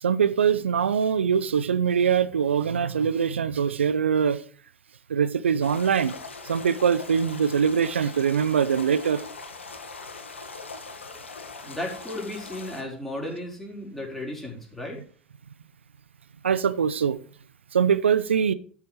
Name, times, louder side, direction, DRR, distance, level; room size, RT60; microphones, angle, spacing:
voice 1, 0.0-4.4 5.1-6.1 6.4-9.2 16.4-17.2 17.7-18.5, right 7 dB, 80° right, 0.7 m, -23 dB
sound 1, 5.6-12.8, left 4 dB, 85° left, 1.6 m, -41 dB
voice 2, 11.6-15.0, left 1 dB, 5° left, 4.3 m, -34 dB
12.5 x 6.7 x 4.9 m
figure-of-eight pair, 80°, 6 cm